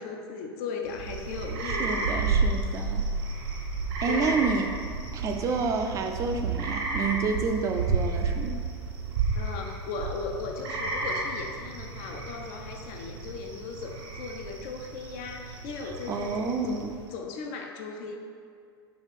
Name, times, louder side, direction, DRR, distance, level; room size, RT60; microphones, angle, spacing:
voice 1, 0.0-2.2 4.1-4.4 9.3-16.8 17.1-18.2, left 5 dB, 45° left, 3 dB, 0.4 m, -37 dB
sound 1, 0.9-17.1, right 4 dB, 60° right, 0.7 m, -32 dB
voice 2, 1.6-3.0 4.0-4.7 5.1-8.6 16.1-16.9, right 4 dB, 25° right, 4 dB, 0.3 m, -29 dB
4.6 x 2.4 x 3.4 m, 2.3 s
figure-of-eight pair, 85°, 14 cm